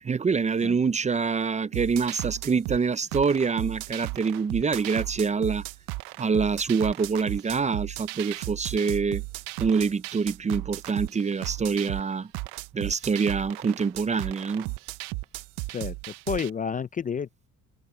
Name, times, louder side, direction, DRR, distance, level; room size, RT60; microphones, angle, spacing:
voice 1, 0.0-5.6 6.2-9.2 9.6-12.3 12.7-14.7, right 5 dB, 20° right, 0.6 m, -26 dB
sound 1, 1.7-16.5, right 22 dB, 90° right, 0.6 m, -35 dB
voice 2, 15.7-17.5, left 6 dB, 25° left, 0.4 m, -31 dB
cardioid pair, 105°, 33 cm